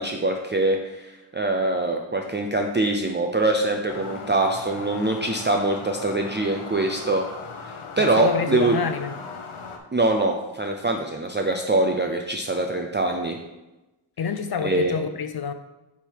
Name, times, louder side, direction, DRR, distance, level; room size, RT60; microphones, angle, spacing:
voice 1, 0.0-7.2 7.6-8.8 9.9-13.4 14.6-15.0, right 2 dB, 25° right, 3 dB, 0.5 m, -24 dB
sound 1, 3.9-9.8, left 4 dB, 80° left, 1.0 m, -39 dB
voice 2, 8.0-9.1 14.2-15.5, left 6 dB, 50° left, 9 dB, 0.6 m, -27 dB
8.4 x 3.6 x 4.6 m, 1.0 s
wide cardioid pair, 100°, 49 cm